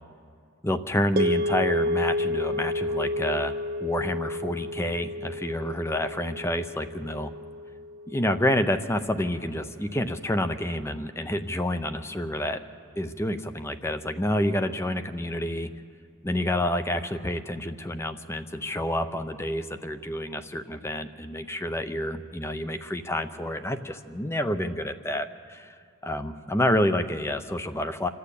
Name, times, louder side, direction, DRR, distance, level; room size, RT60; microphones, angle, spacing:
voice 1, 0.6-3.5 3.8-7.3 8.1-12.6 13.0-15.7 16.2-25.7 26.0-28.1, left 1 dB, 15° left, 9 dB, 0.6 m, -28 dB
sound 1, 1.2-9.4, left 1 dB, 45° right, 0.5 m, -31 dB
27.0 x 12.0 x 8.4 m, 2.2 s
head